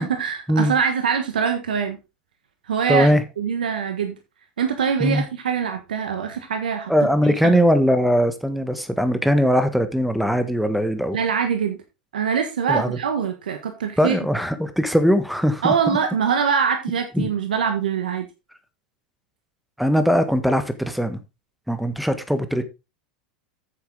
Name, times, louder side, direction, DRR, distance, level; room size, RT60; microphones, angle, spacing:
voice 1, 0.0-2.0 2.7-3.1 3.4-4.2 4.6-6.9 7.2-7.6 11.1-11.8 12.1-14.2 15.6-18.2, right 7 dB, 85° right, 1.3 m, -23 dB
voice 2, 2.9-3.2 5.0-5.2 6.9-11.2 12.7-13.0 14.0-15.7 17.1-17.3 19.8-21.2 21.7-22.6, equal, ahead, 1.4 m, -20 dB
9.4 x 7.0 x 3.8 m
hypercardioid pair, 95°, 5 cm